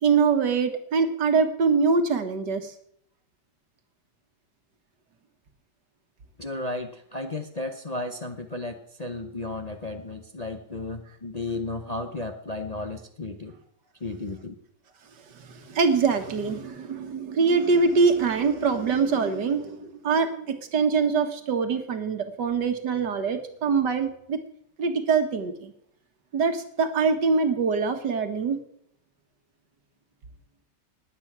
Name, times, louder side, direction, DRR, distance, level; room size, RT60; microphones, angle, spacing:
voice 1, 0.0-2.7 15.3-24.4 24.8-25.7 26.3-28.6, right 5 dB, 75° right, 7 dB, 2.1 m, -24 dB
voice 2, 6.4-13.5 14.0-14.5, left 2 dB, 30° left, 5 dB, 0.8 m, -34 dB
19.5 x 8.6 x 6.1 m, 0.70 s
omnidirectional pair, 1.9 m